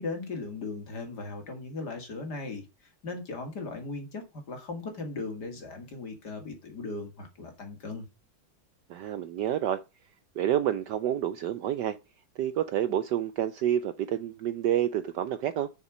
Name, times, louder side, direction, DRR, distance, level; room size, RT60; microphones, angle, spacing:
voice 1, 0.0-8.1, left 3 dB, 50° left, 2.7 m, -38 dB
voice 2, 8.9-9.8 10.4-12.0 12.4-15.7, right 11 dB, 70° right, 1.0 m, -28 dB
6.8 x 6.5 x 6.1 m
omnidirectional pair, 2.3 m